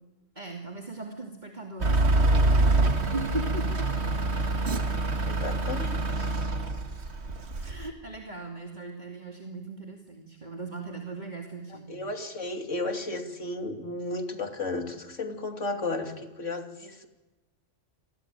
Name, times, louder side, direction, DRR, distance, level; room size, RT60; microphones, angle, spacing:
voice 1, 0.3-3.9 7.6-11.9, right 3 dB, 35° right, 2 dB, 2.8 m, -38 dB
Truck / Idling, 1.8-7.9, right 2 dB, 60° right, 2.2 m, -25 dB
voice 2, 5.3-6.3 11.9-17.1, left 2 dB, 80° left, 5 dB, 3.1 m, -34 dB
29.0 x 22.0 x 9.1 m, 1.1 s
omnidirectional pair, 1.3 m